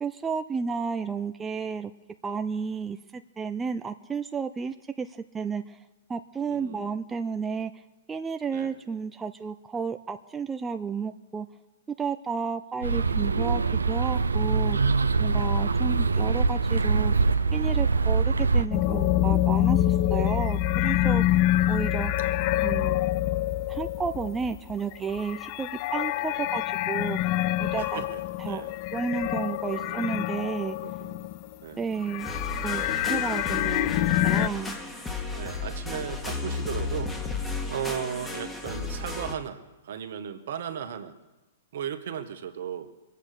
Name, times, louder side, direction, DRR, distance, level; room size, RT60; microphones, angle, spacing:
voice 1, 0.0-1.9 2.2-5.8 6.1-7.8 8.1-11.5 12.0-14.8 15.2-21.4 21.7-22.1 22.6-23.0 23.7-27.3 27.6-28.0 28.4-28.6 28.9-30.8 31.8-32.3 32.6-34.8, right 5 dB, 15° right, 7 dB, 0.5 m, -32 dB
voice 2, 6.5-6.9 8.5-8.7 21.5-22.6 26.2-26.4 27.7-28.7 29.6-30.2 30.8-31.3 31.6-31.8 35.3-37.4 37.7-41.2 41.7-42.9, right 8 dB, 65° right, 8 dB, 1.5 m, -37 dB
sound 1, 12.8-18.7, right 4 dB, 90° right, 0.6 m, -24 dB
sound 2, 18.7-31.5 31.8-34.5, left 14 dB, 40° left, 0.4 m, -26 dB
sound 3, 32.2-39.3, left 3 dB, 10° left, 1.7 m, -34 dB
22.5 x 8.3 x 6.7 m, 1.1 s
hypercardioid pair, 120°, 0 cm